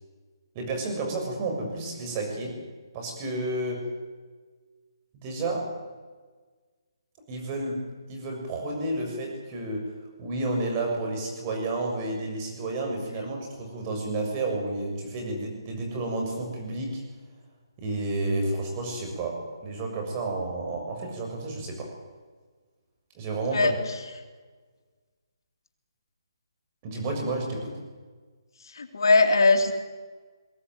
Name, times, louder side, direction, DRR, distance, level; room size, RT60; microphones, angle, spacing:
voice 1, 0.5-2.6 2.9-3.9 5.2-5.7 7.3-9.9 10.2-17.0 17.8-21.9 23.1-23.7 26.8-27.8, right 2 dB, 25° right, 2 dB, 6.9 m, -31 dB
voice 2, 23.5-24.0 28.6-29.7, left 3 dB, 65° left, 5 dB, 2.8 m, -21 dB
22.0 x 16.0 x 9.2 m, 1.4 s
hypercardioid pair, 155°, 2 cm